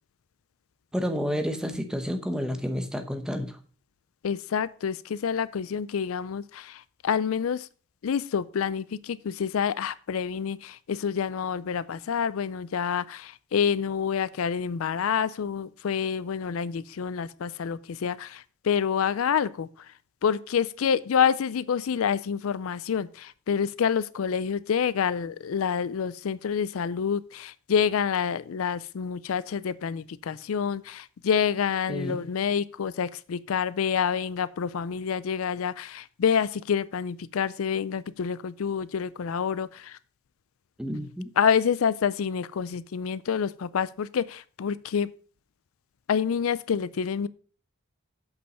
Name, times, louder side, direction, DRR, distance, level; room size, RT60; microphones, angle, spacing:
voice 1, 0.9-3.6 31.9-32.2 40.8-41.3, equal, 5° right, 7 dB, 0.9 m, -30 dB
voice 2, 4.2-7.7 8.0-19.7 20.2-40.0 41.4-45.1 46.1-47.3, left 7 dB, 80° left, 17 dB, 0.4 m, -27 dB
8.2 x 5.5 x 5.4 m, 0.41 s
head